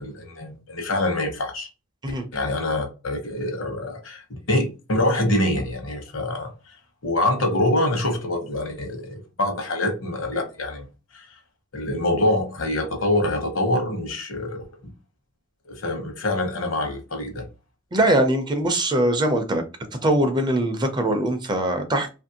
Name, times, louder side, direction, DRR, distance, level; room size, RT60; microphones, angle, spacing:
voice 1, 0.0-1.7 2.3-6.5 7.0-10.8 11.1-11.3 11.7-14.7 15.7-17.5, left 1 dB, 70° left, 0.9 m, -25 dB
voice 2, 17.9-19.6 20.0-22.2, right 1 dB, 20° right, 0.5 m, -22 dB
2.8 x 2.5 x 2.7 m
head